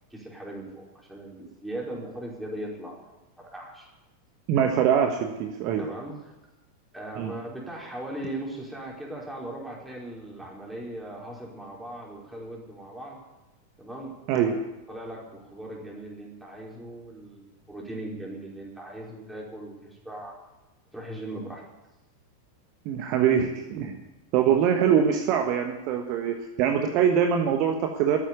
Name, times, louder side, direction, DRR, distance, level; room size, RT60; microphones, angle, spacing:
voice 1, 0.1-3.9 5.8-6.3 6.9-13.2 13.8-20.4 20.9-21.6, right 1 dB, 5° right, -3 dB, 4.8 m, -39 dB
voice 2, 4.5-5.9 7.2-7.3 14.3-14.6 22.8-24.0 24.3-28.2, right 8 dB, 40° right, 4 dB, 1.3 m, -23 dB
13.5 x 9.1 x 9.6 m, 1.0 s
figure-of-eight pair, 90°, 0 cm